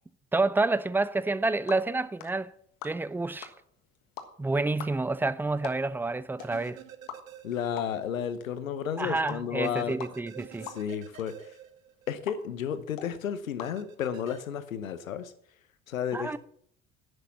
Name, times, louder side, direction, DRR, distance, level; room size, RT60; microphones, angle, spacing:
voice 1, 0.3-2.5 2.8-3.5 4.4-6.8 9.0-10.7 16.1-16.4, right 3 dB, 5° right, 0.4 m, -28 dB
sound 1, 1.2-14.5, left 9 dB, 55° left, 1.5 m, -48 dB
sound 2, 6.4-8.1 8.4-8.5 9.6-12.4 13.6-14.4, right 11 dB, 80° right, 0.8 m, -49 dB
voice 2, 7.4-10.0 10.7-11.5 12.1-15.3 15.9-16.4, left 8 dB, 85° left, 0.9 m, -32 dB
10.5 x 6.7 x 7.3 m
figure-of-eight pair, 55°, 39 cm